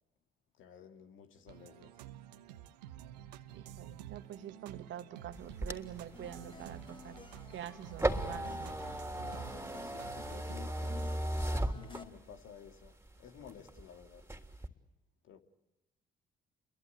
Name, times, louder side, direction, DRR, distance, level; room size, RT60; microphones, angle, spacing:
voice 1, 0.5-2.0 9.2-11.1 11.5-14.3 15.2-15.4, left 8 dB, 70° left, 2.5 m, -53 dB
sound 1, 1.5-11.1, right 12 dB, 85° right, 1.0 m, -51 dB
voice 2, 3.5-7.2 7.5-8.7, right 10 dB, 65° right, 2.1 m, -46 dB
sound 2, 5.3-12.4 12.9-13.8 14.2-14.7, right 1 dB, 10° right, 3.3 m, -37 dB
sound 3, 6.1-12.0, left 3 dB, 25° left, 3.6 m, -53 dB
29.5 x 23.0 x 8.6 m
hypercardioid pair, 45°, 21 cm